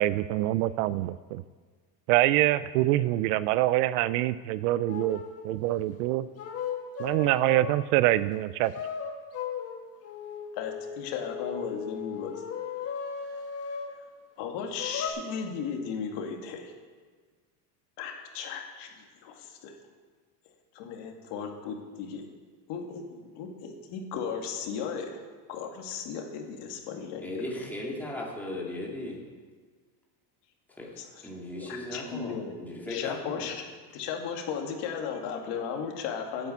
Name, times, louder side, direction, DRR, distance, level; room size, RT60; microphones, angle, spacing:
voice 1, 0.0-1.4 2.1-5.2 5.4-6.3 7.0-8.7, right 15 dB, 65° right, 17 dB, 0.5 m, -25 dB
sound 1, 4.9-5.5 6.4-7.9 8.7-14.0 14.8-15.1, left 7 dB, 30° left, 1.5 m, -36 dB
voice 2, 10.5-12.3 13.3-13.4 14.4-16.7 18.0-19.7 20.7-22.2 22.7-25.2 25.5-27.4 31.0-31.1 31.6-32.5 32.8-33.6 33.9-36.5, left 6 dB, 55° left, 2 dB, 2.2 m, -36 dB
voice 3, 27.2-29.2 30.8-30.9 31.2-33.5, left 1 dB, 5° left, -3 dB, 2.4 m, -37 dB
8.8 x 8.3 x 8.1 m, 1.5 s
supercardioid pair, 135°, 50 cm